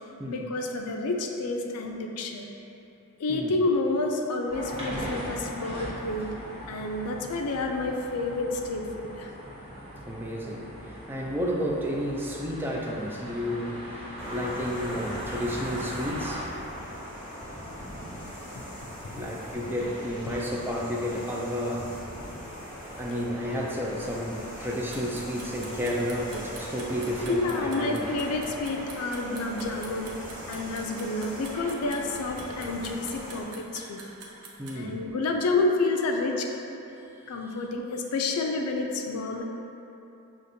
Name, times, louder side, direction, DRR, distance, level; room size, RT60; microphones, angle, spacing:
voice 1, 0.3-2.5 3.2-6.3 6.7-9.3 18.6-18.7 19.1-19.2 27.3-34.0 34.7-36.5 37.3-39.4, left 2 dB, 80° left, 2 dB, 0.4 m, -29 dB
sound 1, 4.5-16.4, equal, 25° right, 0.9 m, -39 dB
voice 2, 10.1-16.5 19.1-21.9 22.9-28.1 34.6-35.0, equal, 10° right, -3 dB, 0.3 m, -31 dB
sound 2, 14.2-33.4, equal, 20° left, 1.4 m, -40 dB
sound 3, 24.7-34.8, right 4 dB, 85° right, 0.6 m, -45 dB
6.4 x 2.5 x 2.6 m, 3.0 s
head